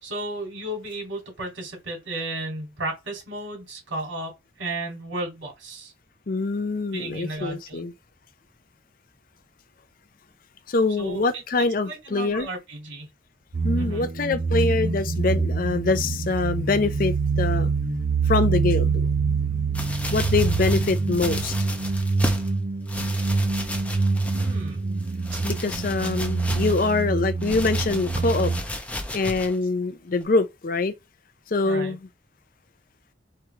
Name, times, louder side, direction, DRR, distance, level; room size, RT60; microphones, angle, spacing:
voice 1, 0.0-5.9 6.9-7.9 11.0-13.1 13.7-14.1 24.3-24.8 25.3-25.4 31.6-31.9, right 2 dB, 85° right, 3.2 m, -34 dB
voice 2, 6.3-7.9 10.7-12.5 13.6-17.7 18.2-19.1 20.1-21.5 25.4-28.5 29.1-30.9 31.5-32.0, left 3 dB, 45° left, 0.5 m, -24 dB
sound 1, 13.5-28.6, right 4 dB, 45° right, 0.7 m, -25 dB
sound 2, 19.7-22.5 22.9-24.7 25.0-27.0 27.4-29.6 30.2-30.3, left 1 dB, 5° left, 0.6 m, -34 dB
4.5 x 3.1 x 3.5 m
head